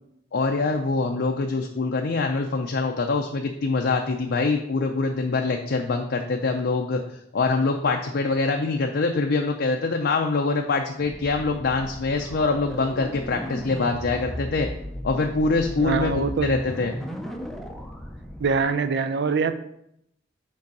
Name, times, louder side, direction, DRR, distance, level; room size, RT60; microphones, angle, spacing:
voice 1, 0.3-14.7 15.0-16.9, left 3 dB, 55° left, 3 dB, 0.5 m, -24 dB
sound 1, 11.0-18.6, equal, ahead, 0.5 m, -36 dB
voice 2, 15.8-16.5 18.4-19.6, right 4 dB, 60° right, 11 dB, 0.5 m, -24 dB
5.3 x 4.6 x 5.3 m, 0.78 s
head